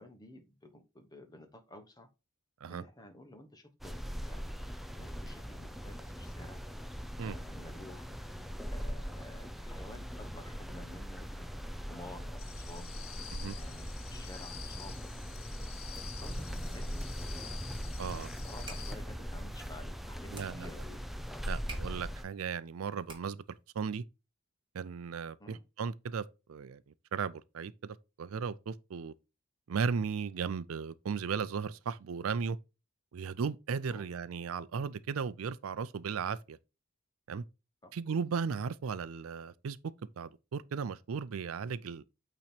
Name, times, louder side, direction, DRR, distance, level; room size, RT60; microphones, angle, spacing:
voice 1, 0.0-2.1 2.7-3.9 4.2-4.6 4.9-6.6 7.2-8.1 8.7-11.5 11.9-12.9 13.5-15.0 15.9-21.0 25.4-25.6 33.9-34.1 37.8-37.9, left 1 dB, 20° left, 1.0 m, -52 dB
sound 1, 3.8-22.2, equal, ahead, 0.4 m, -40 dB
sound 2, 12.4-18.9, left 10 dB, 75° left, 0.7 m, -49 dB
voice 2, 18.0-18.3 20.3-20.8 21.4-23.4 23.8-24.0 24.7-26.8 27.1-29.1 29.7-32.6 33.1-36.6 37.3-37.4 37.9-39.8 40.2-42.0, right 6 dB, 80° right, 0.4 m, -36 dB
sound 3, 18.5-23.6, right 4 dB, 25° right, 2.3 m, -52 dB
8.7 x 3.0 x 4.3 m
head